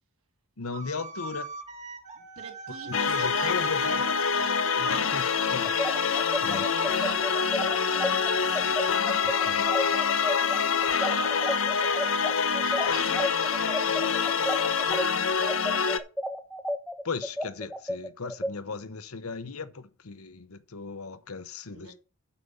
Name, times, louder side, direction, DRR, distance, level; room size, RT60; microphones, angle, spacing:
voice 1, 0.6-1.5 3.1-4.0 4.8-5.2 5.5-5.8 6.4-6.7 9.2-9.7 17.0-21.9, left 4 dB, 85° left, 1.0 m, -37 dB
sound 1, 0.7-6.6, right 3 dB, 35° right, 1.6 m, -42 dB
voice 2, 2.4-5.4 6.1-12.0 12.5-14.8 21.7-21.9, right 3 dB, 75° right, 2.7 m, -44 dB
sound 2, 2.9-16.0, left 6 dB, 65° left, 0.8 m, -26 dB
sound 3, 5.6-15.0 15.4-18.5, equal, ahead, 0.9 m, -32 dB
8.3 x 5.1 x 7.0 m
head